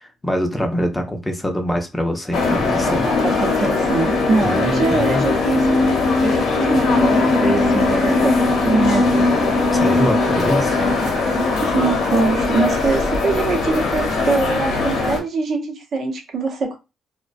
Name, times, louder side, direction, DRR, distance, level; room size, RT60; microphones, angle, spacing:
voice 1, 0.2-3.1 4.4-5.3 9.7-10.8, equal, 15° left, 0.5 m, -24 dB
sound 1, 2.3-15.2, left 3 dB, 70° left, 0.7 m, -19 dB
voice 2, 2.9-9.3 11.4-16.8, right 3 dB, 60° right, 0.7 m, -23 dB
2.4 x 2.1 x 2.4 m
cardioid pair, 90°, 0 cm